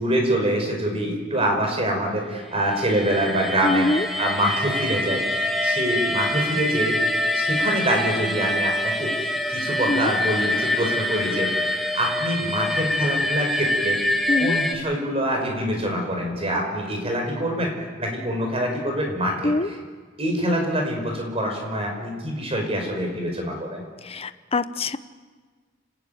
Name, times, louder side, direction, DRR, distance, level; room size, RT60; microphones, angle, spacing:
voice 1, 0.0-3.9 4.2-7.0 7.3-14.0 14.4-17.7 18.0-19.5 20.2-23.8, equal, 30° right, 2 dB, 5.3 m, -25 dB
sound 1, 2.5-14.7, left 1 dB, ahead, 2.0 m, -25 dB
voice 2, 3.6-4.1 9.9-10.1 14.3-14.6 19.4-19.7 24.0-25.0, left 2 dB, 30° left, 13 dB, 0.8 m, -24 dB
30.0 x 11.0 x 9.4 m, 1.5 s
head